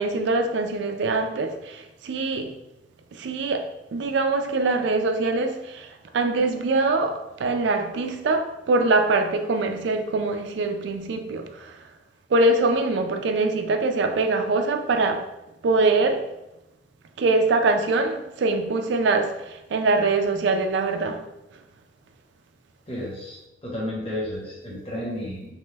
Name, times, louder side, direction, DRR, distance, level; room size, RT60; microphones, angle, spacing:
voice 1, 0.0-2.6 3.1-11.8 12.3-15.3 15.6-16.3 17.2-21.2, right 3 dB, 75° right, 0.4 m, -23 dB
voice 2, 22.9-25.5, left 1 dB, 30° left, 1.0 m, -32 dB
2.9 x 2.2 x 3.3 m
head